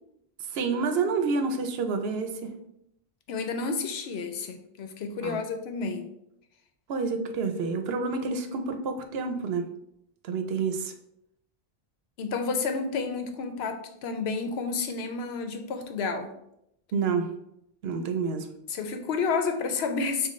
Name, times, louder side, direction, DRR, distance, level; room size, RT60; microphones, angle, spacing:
voice 1, 0.5-2.5 5.2-5.4 6.9-9.7 10.2-10.9 16.9-17.3 17.8-18.5, right 4 dB, 75° right, 6 dB, 0.8 m, -28 dB
voice 2, 3.3-6.1 12.2-16.3 18.7-20.3, left 4 dB, 85° left, 6 dB, 0.9 m, -30 dB
6.3 x 2.3 x 3.0 m, 0.80 s
omnidirectional pair, 1.0 m